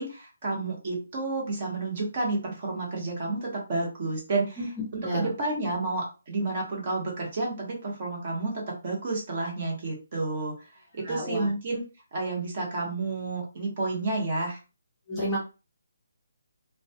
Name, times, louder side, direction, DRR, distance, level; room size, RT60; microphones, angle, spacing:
voice 1, 0.0-4.6 4.9-10.5 10.9-11.8 12.1-14.6, right 3 dB, 30° right, -2 dB, 0.9 m, -30 dB
voice 2, 4.6-5.3 11.0-11.5 15.1-15.4, equal, 5° left, -10 dB, 0.7 m, -31 dB
2.2 x 2.2 x 2.7 m, 0.31 s
hypercardioid pair, 175°, 0 cm